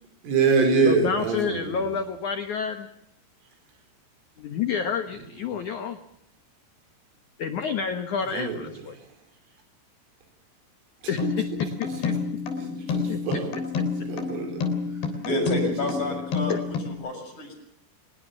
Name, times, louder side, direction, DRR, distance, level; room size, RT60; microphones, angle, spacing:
voice 1, 0.2-1.8 8.3-8.6 12.6-13.5 14.1-14.6 15.4-15.7, right 5 dB, 90° right, 5 dB, 7.3 m, -24 dB
voice 2, 0.8-2.9 4.4-6.0 7.4-9.0 11.1-11.2 11.8-12.1 13.1-13.2 16.5-16.6, left 6 dB, 80° left, 8 dB, 1.7 m, -29 dB
sound 1, 11.2-16.9, left 5 dB, 60° left, 5.2 m, -29 dB
voice 3, 15.2-16.5 16.8-17.5, left 2 dB, 40° left, 4 dB, 7.6 m, -29 dB
24.0 x 21.0 x 7.2 m, 0.79 s
omnidirectional pair, 5.5 m